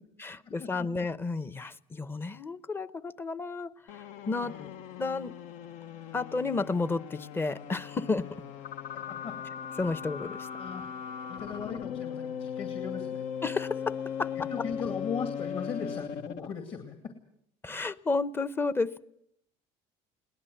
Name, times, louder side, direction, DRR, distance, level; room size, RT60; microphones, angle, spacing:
voice 1, 0.2-4.5 5.0-5.3 6.1-8.3 9.8-10.5 13.4-14.3 17.6-19.0, left 3 dB, 15° left, 16 dB, 0.8 m, -32 dB
sound 1, 3.9-16.6, left 8 dB, 70° left, 1.1 m, -38 dB
voice 2, 4.4-4.8 6.0-6.1 8.2-8.4 8.9-9.4 10.6-10.9 11.3-13.2 14.4-17.1, left 6 dB, 45° left, 6 dB, 2.5 m, -38 dB
21.5 x 19.0 x 7.9 m, 0.71 s
cardioid pair, 140°, 13 cm